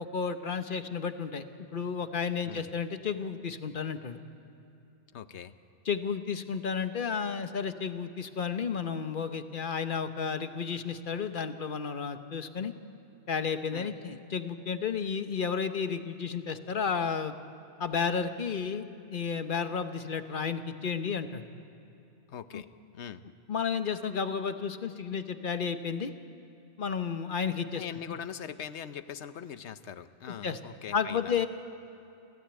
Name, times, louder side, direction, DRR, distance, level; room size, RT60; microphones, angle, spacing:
voice 1, 0.0-1.4 1.7-4.2 5.9-12.7 13.3-17.3 17.8-21.4 22.5-22.6 23.5-26.1 26.8-27.8 28.1-28.2 30.4-30.6 30.9-31.5, left 6 dB, 50° left, 9 dB, 1.1 m, -32 dB
voice 2, 5.1-5.5 13.7-13.9 22.3-22.7 22.9-23.2 27.7-31.4, left 8 dB, 75° left, 12 dB, 1.1 m, -41 dB
29.5 x 13.5 x 8.9 m, 2.8 s
omnidirectional pair, 1.2 m